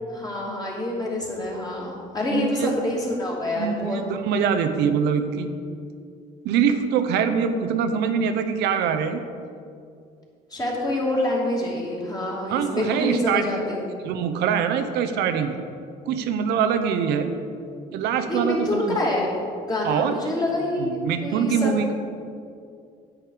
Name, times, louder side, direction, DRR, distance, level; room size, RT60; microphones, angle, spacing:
voice 1, 0.1-4.0 10.5-13.8 18.3-19.4 19.7-21.7, left 1 dB, 20° left, -4 dB, 2.9 m, -26 dB
voice 2, 2.3-2.7 3.6-5.5 6.4-9.2 12.5-13.6 14.0-15.6 16.1-17.3 17.9-19.0 19.8-20.2 20.8-21.9, right 7 dB, 85° right, 8 dB, 0.8 m, -24 dB
9.4 x 8.8 x 5.0 m, 2.4 s
cardioid pair, 110°, 17 cm